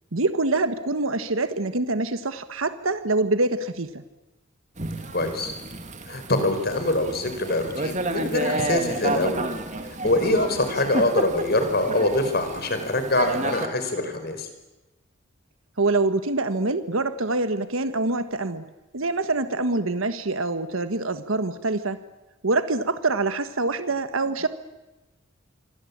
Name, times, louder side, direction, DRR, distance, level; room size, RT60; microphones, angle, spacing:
voice 1, 0.1-4.0 15.8-18.6 18.9-22.0 22.4-24.5, right 2 dB, 90° right, 10 dB, 1.4 m, -25 dB
Thunder / Rain, 4.8-13.7, right 2 dB, 35° right, 2.5 m, -31 dB
voice 2, 5.1-5.5 6.1-9.5 9.8-14.5, left 2 dB, 50° left, 8 dB, 5.0 m, -24 dB
27.5 x 24.0 x 8.8 m, 1.1 s
head